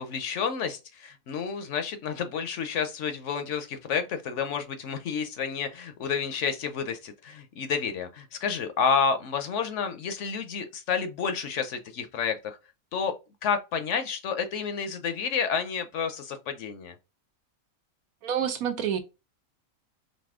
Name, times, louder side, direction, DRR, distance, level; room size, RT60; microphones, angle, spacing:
voice 1, 0.0-12.6 12.9-13.1 13.4-16.9, left 6 dB, 65° left, 0.9 m, -30 dB
voice 2, 18.2-19.0, right 8 dB, 80° right, 1.2 m, -28 dB
4.2 x 2.6 x 3.5 m
omnidirectional pair, 1.5 m